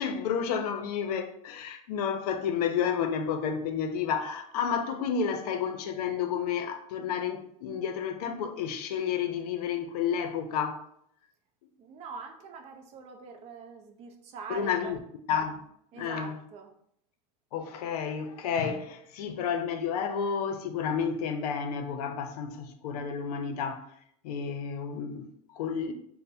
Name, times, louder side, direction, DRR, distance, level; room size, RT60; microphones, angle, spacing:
voice 1, 0.0-10.9 14.5-15.0 15.3-15.7 15.9-16.4 17.5-23.9 24.2-25.9, left 7 dB, 80° left, 0.5 m, -31 dB
voice 2, 11.8-15.0 15.9-16.7, right 5 dB, 35° right, 0.5 m, -44 dB
3.3 x 2.1 x 4.1 m
supercardioid pair, 140°, 20 cm